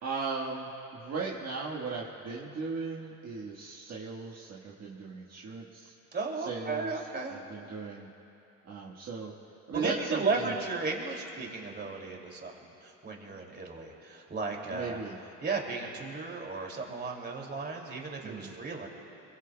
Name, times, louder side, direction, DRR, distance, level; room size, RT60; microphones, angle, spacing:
voice 1, 0.0-5.9 6.4-8.1 8.6-9.3 9.7-10.5 14.7-15.2 18.2-18.5, right 4 dB, 45° right, -4 dB, 1.7 m, -37 dB
voice 2, 6.1-7.4 9.7-15.0 15.4-18.9, right 3 dB, 30° right, 0 dB, 2.8 m, -35 dB
25.0 x 22.5 x 2.3 m, 2.9 s
supercardioid pair, 95°, 36 cm